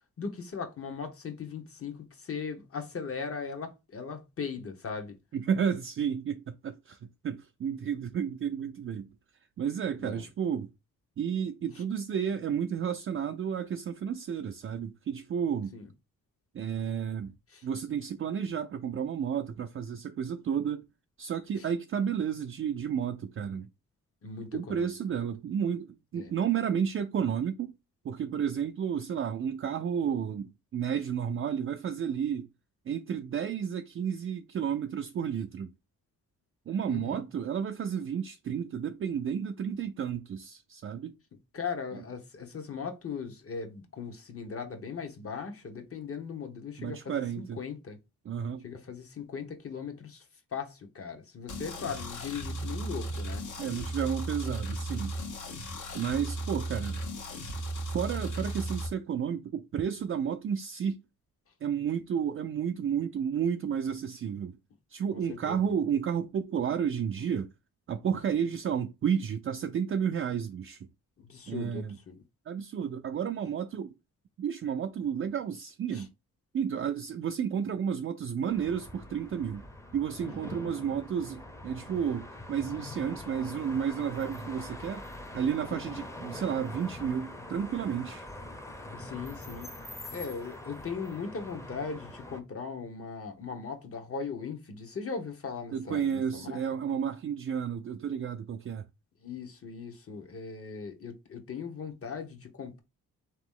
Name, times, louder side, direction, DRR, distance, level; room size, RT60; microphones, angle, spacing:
voice 1, 0.2-5.2 9.9-10.2 15.7-15.9 17.5-17.6 24.2-24.9 26.1-26.3 36.9-37.2 41.5-47.2 47.6-48.0 48.6-50.2 50.5-53.4 65.1-65.7 71.2-72.2 75.9-76.0 85.7-86.0 88.9-89.8 90.1-96.6 99.2-102.8, left 5 dB, 45° left, 1.0 m, -39 dB
voice 2, 5.3-9.1 9.6-10.7 11.2-15.7 16.5-17.3 17.6-20.8 21.2-23.7 24.5-27.7 28.0-32.5 32.9-35.7 36.7-41.1 46.8-47.6 48.3-48.7 53.6-55.2 55.9-57.0 57.9-61.0 61.6-64.6 64.9-67.5 67.9-70.9 71.5-72.0 72.5-73.9 74.4-76.1 76.5-79.6 79.9-85.0 85.3-88.3 95.7-98.9, right 8 dB, 40° right, 0.4 m, -32 dB
sound 1, 51.5-58.9, right 1 dB, 65° left, 1.1 m, -36 dB
sound 2, 78.5-92.4, left 1 dB, 10° left, 0.7 m, -43 dB
4.0 x 3.0 x 3.6 m
cardioid pair, 95°, 32 cm